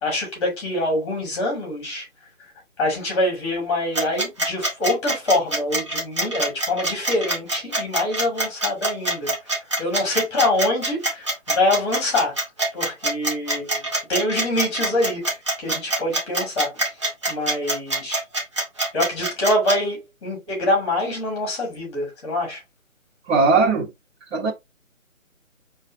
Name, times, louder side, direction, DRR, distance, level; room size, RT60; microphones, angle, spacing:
voice 1, 0.0-2.1 2.8-9.3 9.8-12.4 12.7-16.8 17.3-18.2 18.9-22.6, left 1 dB, 20° left, 2.2 m, -25 dB
sound 1, 3.9-19.8, right 2 dB, 20° right, 0.8 m, -24 dB
voice 2, 23.3-23.9 24.3-24.5, right 4 dB, 55° right, 1.6 m, -18 dB
5.4 x 3.2 x 2.6 m
figure-of-eight pair, 160°, 41 cm